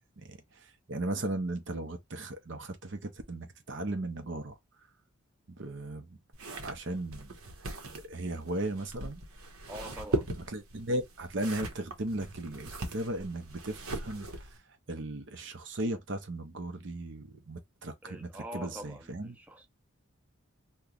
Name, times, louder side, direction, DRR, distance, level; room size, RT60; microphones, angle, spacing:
voice 1, 0.9-4.6 5.5-6.2 6.6-7.3 8.1-9.2 10.4-14.3 14.9-19.4, right 1 dB, 55° right, 0.7 m, -36 dB
sound 1, 6.3-14.6, right 2 dB, 80° right, 0.9 m, -39 dB
voice 2, 9.7-10.3 18.0-19.7, equal, 5° right, 0.6 m, -44 dB
3.0 x 2.3 x 3.7 m
head